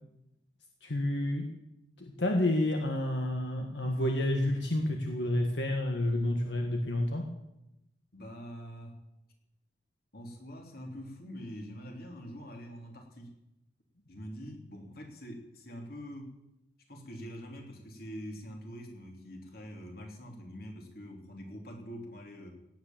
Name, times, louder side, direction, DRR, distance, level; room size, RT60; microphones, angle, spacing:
voice 1, 0.8-1.5 2.0-7.3, left 1 dB, 80° left, 3 dB, 1.6 m, -29 dB
voice 2, 8.1-9.0 10.1-13.3 14.1-16.3 16.9-22.5, equal, 55° left, 2 dB, 3.2 m, -44 dB
17.5 x 9.5 x 7.4 m, 0.89 s
head